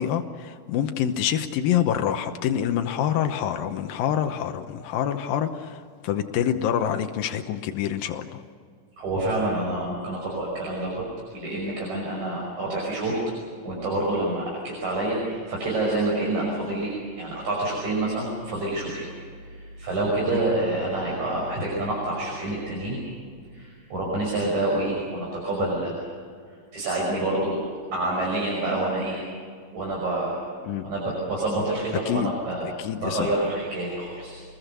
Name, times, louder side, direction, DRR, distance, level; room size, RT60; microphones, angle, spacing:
voice 1, 0.0-5.8 6.0-8.4 20.3-20.4 30.6-30.8 32.1-32.3 32.6-33.3, left 9 dB, 90° left, 6 dB, 2.8 m, -26 dB
voice 2, 9.0-11.0 11.3-13.2 13.6-19.1 19.5-23.0 23.5-26.0 26.7-27.6 27.9-29.2 29.7-30.5 30.8-32.7 32.9-34.4, right 2 dB, 55° right, -3 dB, 7.0 m, -27 dB
26.5 x 21.0 x 6.8 m, 2.2 s
omnidirectional pair, 3.9 m